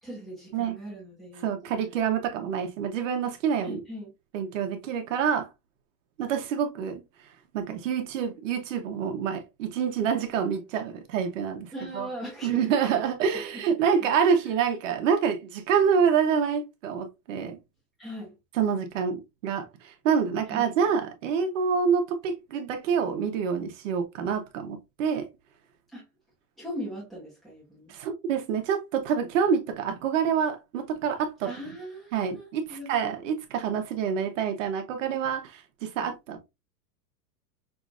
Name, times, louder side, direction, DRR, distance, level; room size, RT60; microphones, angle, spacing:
voice 1, 0.0-1.5 3.6-4.1 11.7-13.0 14.0-14.1 14.4-14.5 18.0-18.3 20.5-20.7 25.9-26.0 26.6-27.9 31.4-32.9, equal, ahead, 1.4 m, -39 dB
voice 2, 1.4-3.8 4.3-5.5 6.2-7.0 7.5-12.1 12.4-17.6 18.6-25.3 27.9-31.5 32.1-36.4, right 7 dB, 50° right, 1.1 m, -27 dB
5.9 x 3.2 x 2.5 m
supercardioid pair, 160°, 48 cm